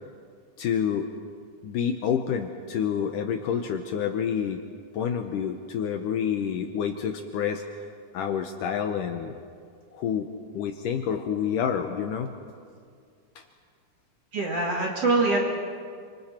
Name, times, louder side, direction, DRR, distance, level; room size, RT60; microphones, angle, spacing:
voice 1, 0.6-1.1 1.6-4.6 4.9-7.9 8.1-9.3 9.9-12.3 13.4-13.5, left 8 dB, 70° left, 5 dB, 2.2 m, -28 dB
voice 2, 14.3-15.4, right 3 dB, 45° right, -1 dB, 2.7 m, -24 dB
29.5 x 26.0 x 4.4 m, 2.2 s
omnidirectional pair, 4.3 m